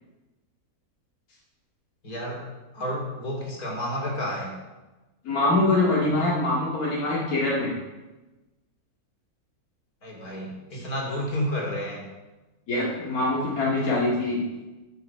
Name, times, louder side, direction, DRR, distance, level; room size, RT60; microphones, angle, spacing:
voice 1, 2.0-2.4 2.7-4.5 10.0-12.0, equal, 90° left, -2 dB, 3.3 m, -31 dB
voice 2, 5.2-7.7 10.7-10.8 12.7-14.6, left 2 dB, 75° left, -6 dB, 2.6 m, -24 dB
11.5 x 7.9 x 5.7 m, 1.1 s
omnidirectional pair, 1.6 m